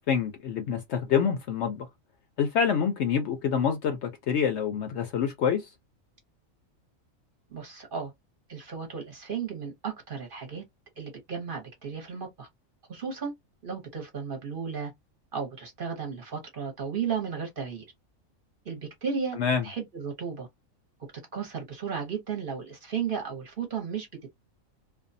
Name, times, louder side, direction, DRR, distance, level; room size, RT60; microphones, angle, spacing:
voice 1, 0.0-1.9 2.4-5.6 19.4-19.6, left 7 dB, 65° left, 0.7 m, -26 dB
voice 2, 7.5-8.1 8.5-10.6 11.0-12.5 12.9-13.3 13.6-14.9 15.3-17.8 18.6-19.4 19.6-20.5 21.3-24.1, right 6 dB, 45° right, 0.9 m, -34 dB
2.5 x 2.2 x 2.5 m
omnidirectional pair, 1.4 m